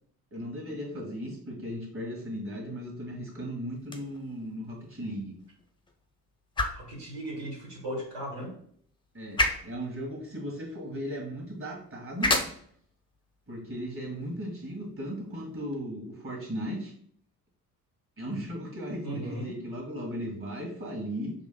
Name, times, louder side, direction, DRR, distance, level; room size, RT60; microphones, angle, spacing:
voice 1, 0.3-5.3 9.1-12.3 13.5-16.9 18.2-21.3, equal, 25° right, 0 dB, 1.7 m, -36 dB
sound 1, 3.8-15.8, left 2 dB, 10° left, 0.5 m, -36 dB
voice 2, 6.7-8.5 19.0-19.5, right 1 dB, 60° right, -4 dB, 1.3 m, -37 dB
6.1 x 2.5 x 2.3 m, 0.62 s
figure-of-eight pair, 45°, 47 cm